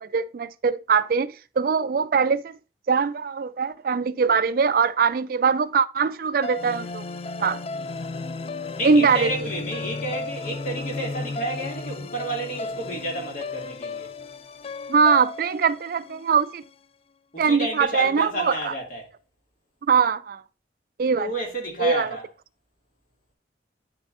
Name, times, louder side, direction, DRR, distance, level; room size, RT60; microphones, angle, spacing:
voice 1, 0.0-2.6 2.9-7.0 7.4-7.6 8.8-9.3 14.9-16.6 17.4-18.7 19.9-20.4 21.0-21.3 21.8-22.2, right 5 dB, 50° right, 0.3 m, -22 dB
sound 1, 6.4-16.7, left 3 dB, 30° left, 0.3 m, -34 dB
voice 2, 8.8-14.1 17.3-19.1 21.2-22.2, right 1 dB, 45° left, 2.3 m, -31 dB
8.9 x 6.8 x 2.6 m
head